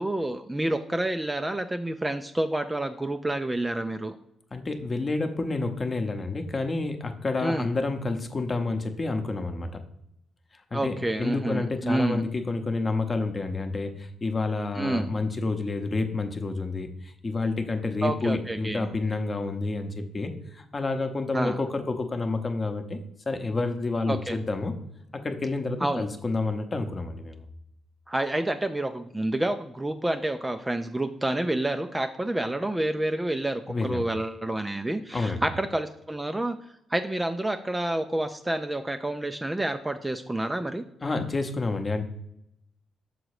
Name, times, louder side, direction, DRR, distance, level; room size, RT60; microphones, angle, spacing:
voice 1, 0.0-4.2 7.4-7.7 10.7-12.3 14.7-15.1 18.0-18.9 21.3-21.6 24.1-24.4 25.8-26.0 28.1-36.6 36.9-40.8, right 1 dB, 10° right, 8 dB, 0.3 m, -28 dB
voice 2, 4.5-9.7 10.7-23.0 23.3-24.7 25.2-27.4 33.7-34.0 35.1-35.5 41.0-42.0, left 3 dB, 30° left, 6 dB, 0.8 m, -29 dB
6.2 x 3.9 x 4.8 m, 0.79 s
cardioid pair, 90°, 0 cm